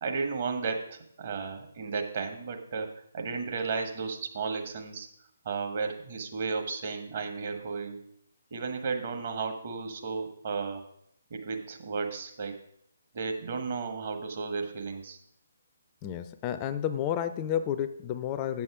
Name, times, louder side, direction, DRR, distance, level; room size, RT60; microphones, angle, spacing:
voice 1, 0.0-5.1 5.4-8.0 8.5-10.8 11.3-12.6 13.1-15.2, right 4 dB, 45° right, 4 dB, 1.5 m, -34 dB
voice 2, 16.0-18.6, left 10 dB, 25° left, 11 dB, 0.4 m, -31 dB
8.3 x 7.1 x 4.9 m, 0.70 s
figure-of-eight pair, 140°, 0 cm